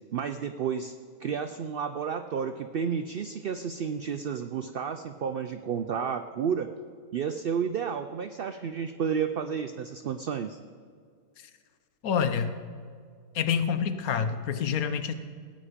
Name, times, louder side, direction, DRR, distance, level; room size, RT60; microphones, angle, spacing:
voice 1, 0.1-0.9 1.2-6.7 7.1-10.6, right 7 dB, 65° right, 8 dB, 0.5 m, -31 dB
voice 2, 12.0-12.6 13.3-15.1, left 7 dB, 80° left, 10 dB, 1.2 m, -27 dB
17.5 x 8.6 x 5.1 m, 2.1 s
omnidirectional pair, 1.5 m